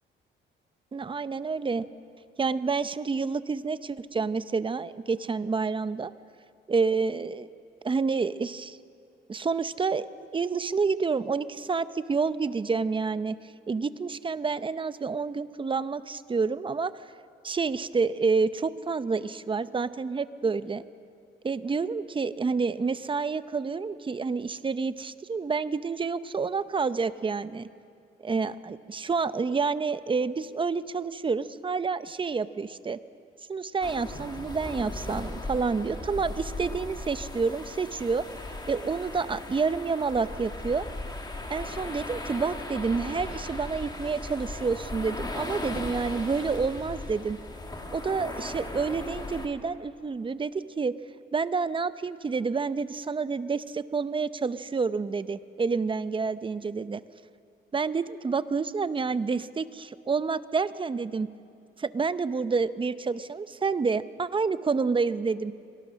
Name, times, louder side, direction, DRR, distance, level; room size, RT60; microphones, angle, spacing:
voice 1, 0.9-1.8 2.4-6.1 6.7-7.5 7.8-8.8 9.3-10.1 10.3-13.4 13.7-17.0 17.4-20.8 21.4-27.7 28.2-33.0 33.5-38.2 38.7-40.9 41.5-47.4 47.9-50.9 51.3-57.0 57.7-61.3 61.8-65.5, right 4 dB, 25° right, 14 dB, 0.7 m, -28 dB
sound 1, 33.8-49.5, left 2 dB, 20° left, 2.3 m, -37 dB
24.5 x 18.5 x 6.4 m, 2.3 s
cardioid pair, 90°, 20 cm